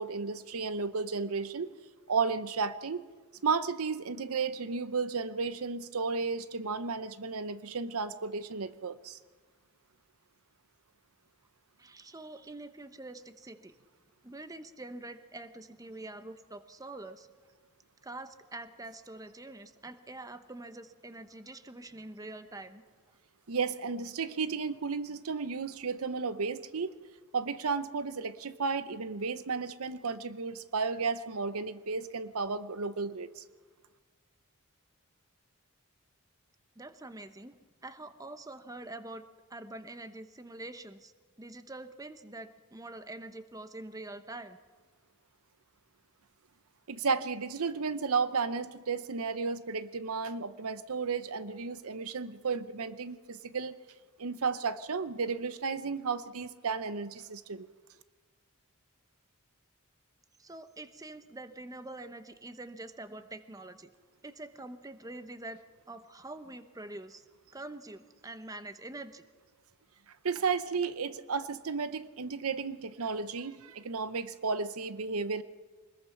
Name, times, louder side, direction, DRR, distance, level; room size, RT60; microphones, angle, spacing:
voice 1, 0.0-1.7 2.1-3.0 3.4-9.2 23.5-26.9 27.3-33.4 46.9-53.8 54.2-57.7 70.2-75.4, right 5 dB, 70° right, 13 dB, 0.8 m, -33 dB
voice 2, 11.8-13.7 14.2-17.3 18.0-22.8 36.8-39.2 39.5-41.1 41.4-44.6 60.4-63.9 64.2-65.6 65.9-67.2 67.5-69.3, right 2 dB, 15° right, 10 dB, 0.9 m, -45 dB
24.5 x 20.5 x 5.8 m, 1.5 s
head